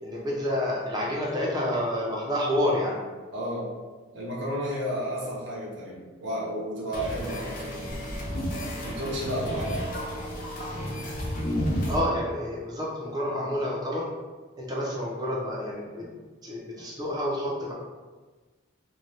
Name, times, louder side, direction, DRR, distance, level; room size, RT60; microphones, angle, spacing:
voice 1, 0.0-3.0 11.9-14.1 14.6-16.1 16.4-17.7, left 1 dB, 20° right, -4 dB, 0.5 m, -29 dB
voice 2, 3.3-3.7 4.1-7.8 8.8-9.8, equal, 60° right, -5 dB, 0.7 m, -32 dB
sound 1, 6.9-12.0, equal, 40° left, 0.5 m, -31 dB
2.7 x 2.3 x 3.2 m, 1.3 s
head